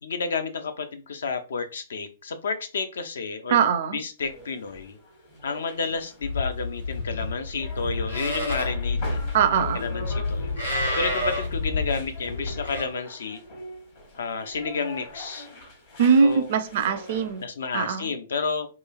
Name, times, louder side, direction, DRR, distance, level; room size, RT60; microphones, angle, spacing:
voice 1, 0.0-3.6 3.9-5.0 5.4-9.2 9.7-10.5 10.9-13.4 14.2-15.5 16.2-16.5 17.4-18.7, left 4 dB, 60° left, 0.4 m, -31 dB
voice 2, 3.5-4.0 9.3-9.8 16.0-17.5 17.7-18.1, right 6 dB, 45° right, 0.4 m, -21 dB
sound 1, 4.2-17.4, left 1 dB, 45° left, 1.1 m, -42 dB
Livestock farm animals working animals, 6.2-12.8, left 2 dB, 85° left, 1.1 m, -29 dB
3.0 x 2.3 x 2.3 m
figure-of-eight pair, 110°, 0 cm